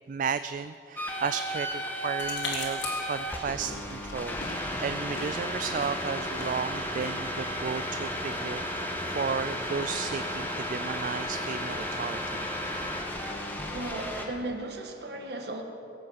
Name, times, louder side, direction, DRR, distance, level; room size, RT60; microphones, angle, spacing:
voice 1, 0.1-12.5, right 6 dB, 45° right, 12 dB, 0.3 m, -34 dB
sound 1, 1.0-14.2, equal, 10° left, 1.5 m, -34 dB
sound 2, 2.2-13.5, left 3 dB, 85° left, 3.2 m, -44 dB
voice 2, 13.7-15.6, right 2 dB, 60° right, 3 dB, 1.7 m, -36 dB
21.0 x 8.6 x 6.4 m, 2.7 s
head